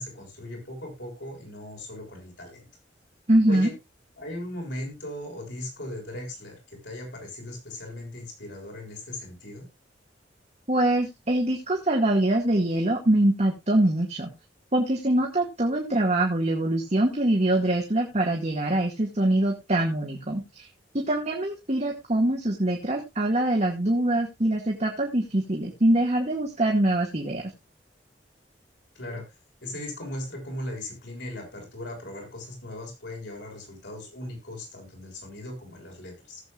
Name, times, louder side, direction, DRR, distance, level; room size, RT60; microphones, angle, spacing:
voice 1, 0.0-2.7 3.5-3.7 4.2-9.7 29.0-29.2 29.6-36.4, left 1 dB, 80° left, 0 dB, 7.0 m, -38 dB
voice 2, 3.3-3.7 10.7-14.3 14.7-20.7 20.9-27.4, right 1 dB, 40° right, 0 dB, 2.0 m, -24 dB
19.0 x 8.0 x 2.5 m, 0.22 s
head